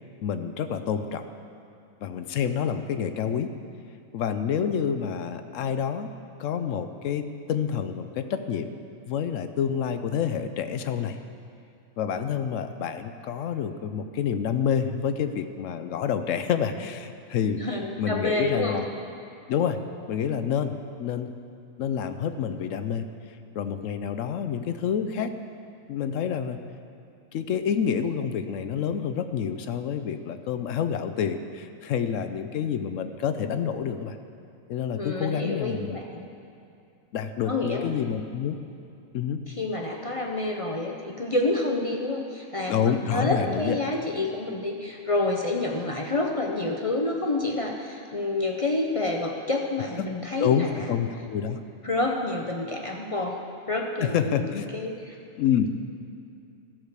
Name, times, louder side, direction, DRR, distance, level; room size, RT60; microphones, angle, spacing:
voice 1, 0.2-1.2 2.0-3.5 4.1-6.1 6.4-8.8 9.1-11.2 12.0-17.6 18.0-18.9 19.5-19.8 20.1-20.7 21.0-21.3 21.8-23.1 23.6-25.3 25.9-26.6 27.3-34.2 34.7-36.0 37.1-38.6 39.1-39.4 42.7-43.8 50.4-51.6 54.0-54.7 55.4-55.7, left 8 dB, 70° left, 9 dB, 0.9 m, -28 dB
voice 2, 17.6-18.8 35.0-36.2 37.5-38.0 39.5-51.0 51.8-53.4 53.7-54.5 54.7-55.2, left 2 dB, 40° left, 1 dB, 0.4 m, -28 dB
13.5 x 4.8 x 6.6 m, 2.6 s
omnidirectional pair, 1.4 m